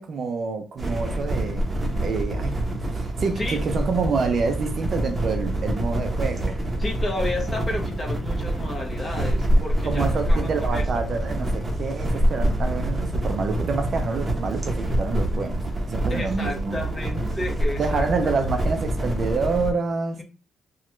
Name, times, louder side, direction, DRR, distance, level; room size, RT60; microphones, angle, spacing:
voice 1, 0.0-6.5 9.8-16.8 17.8-20.2, right 4 dB, 50° right, 0.5 m, -27 dB
sound 1, 0.8-19.7, right 1 dB, 25° right, 0.9 m, -26 dB
voice 2, 6.8-10.8 16.1-18.3, left 2 dB, 30° left, 1.2 m, -32 dB
3.0 x 2.3 x 3.1 m
cardioid pair, 90°, 0 cm